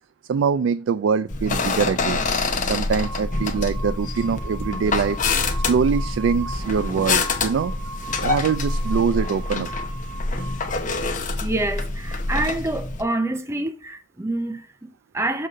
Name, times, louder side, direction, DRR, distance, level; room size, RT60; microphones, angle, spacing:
voice 1, 0.3-2.2 2.6-5.2 5.6-7.7 8.2-9.7, right 6 dB, 85° right, 0.3 m, -23 dB
sound 1, 1.3-13.0, left 3 dB, 45° left, 1.0 m, -26 dB
sound 2, 3.0-10.6, right 1 dB, 45° right, 2.8 m, -38 dB
voice 2, 11.4-15.5, right 2 dB, 15° right, 0.6 m, -27 dB
6.7 x 3.7 x 5.5 m
head